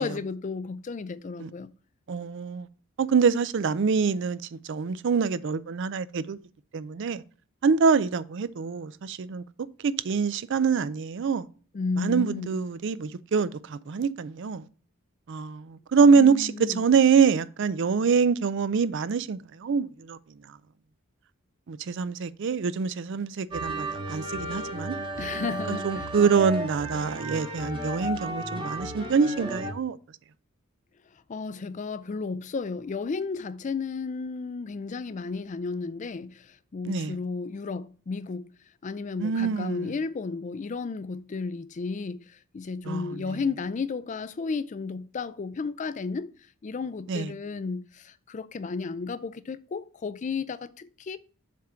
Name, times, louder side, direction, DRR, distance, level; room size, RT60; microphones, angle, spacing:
voice 1, 0.0-1.7 11.7-12.6 16.1-16.8 25.2-26.1 31.3-38.5 38.8-46.3 46.6-51.2, left 4 dB, 35° left, 0.3 m, -33 dB
voice 2, 2.1-2.7 3.0-6.4 6.7-7.2 7.6-9.4 9.8-11.5 12.0-14.7 15.3-20.2 21.7-25.0 25.7-30.0 36.9-37.1 39.2-39.9 42.8-43.2 47.1-47.3, right 5 dB, 55° right, 0.4 m, -25 dB
Village Wedding, 23.5-29.7, right 1 dB, 25° right, 1.2 m, -34 dB
7.3 x 3.8 x 5.7 m
head